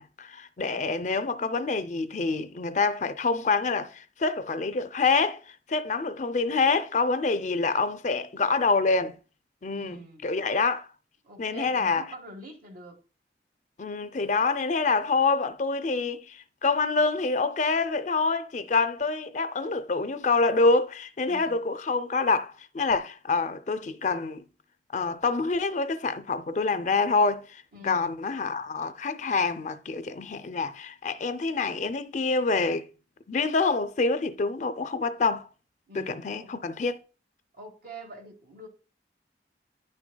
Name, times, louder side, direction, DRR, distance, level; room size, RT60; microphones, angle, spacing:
voice 1, 0.0-5.4 5.7-9.2 9.6-10.9 11.4-12.0 13.8-24.4 24.9-32.9 33.3-35.5 35.9-37.0, left 4 dB, 45° left, 0.5 m, -26 dB
voice 2, 0.7-1.0 9.7-10.3 11.2-13.0 21.3-21.6 27.7-28.1 35.9-36.5 37.5-38.7, right 1 dB, 55° right, 1.5 m, -45 dB
10.0 x 6.1 x 2.2 m
head